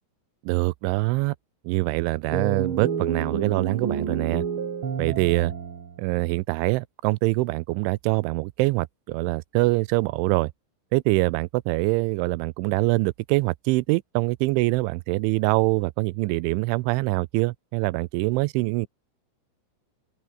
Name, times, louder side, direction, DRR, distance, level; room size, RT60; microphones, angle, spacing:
voice 1, 0.5-1.4 1.6-4.4 5.0-5.5 6.0-10.5 10.9-18.9, right 22 dB, 85° right, 2.8 m, -24 dB
sound 1, 2.3-6.0, right 7 dB, 50° right, 1.5 m, -29 dB
open air
omnidirectional pair, 5.9 m